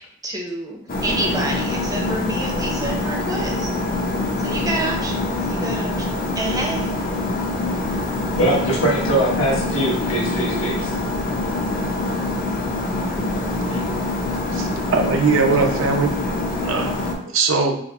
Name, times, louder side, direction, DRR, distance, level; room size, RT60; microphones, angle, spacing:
voice 1, 0.2-3.7 4.4-6.9, right 1 dB, 15° right, 1 dB, 0.6 m, -28 dB
sound 1, 0.9-17.1, left 2 dB, 40° left, 0.6 m, -24 dB
voice 2, 8.4-10.9 13.7-13.8, right 1 dB, 70° left, -4 dB, 1.3 m, -22 dB
voice 3, 14.5-16.1 16.6-17.8, right 4 dB, 70° right, 3 dB, 0.6 m, -21 dB
4.3 x 2.0 x 4.1 m, 0.71 s
head